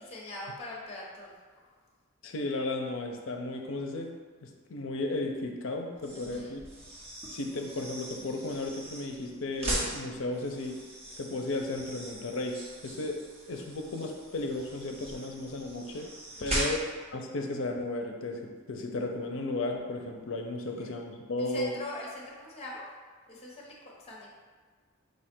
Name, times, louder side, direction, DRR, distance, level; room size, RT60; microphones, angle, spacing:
voice 1, 0.1-1.7 6.1-6.5 16.3-16.7 20.8-20.9 21.4-22.9 23.3-24.3, left 2 dB, 30° left, -3 dB, 1.0 m, -43 dB
voice 2, 2.2-4.1 4.4-6.6 7.3-10.8 11.2-13.2 13.5-16.1 16.4-16.8 17.1-21.7, left 2 dB, 65° left, 3 dB, 0.5 m, -34 dB
sound 1, 5.9-17.1, right 1 dB, 30° right, 1.1 m, -39 dB
5.1 x 2.4 x 4.3 m, 1.5 s
head